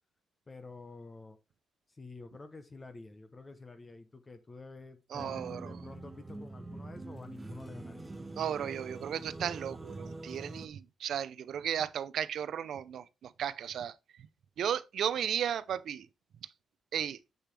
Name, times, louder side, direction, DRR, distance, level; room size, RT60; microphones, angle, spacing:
voice 1, 0.5-1.4 1.9-8.1, left 3 dB, 25° left, 0.9 m, -49 dB
voice 2, 5.1-5.7 8.4-13.9 14.6-16.1 16.9-17.2, right 9 dB, 65° right, 0.6 m, -35 dB
sound 1, 5.2-10.7, right 2 dB, 15° right, 1.0 m, -44 dB
7.8 x 6.8 x 3.3 m
cardioid pair, 130°, 0 cm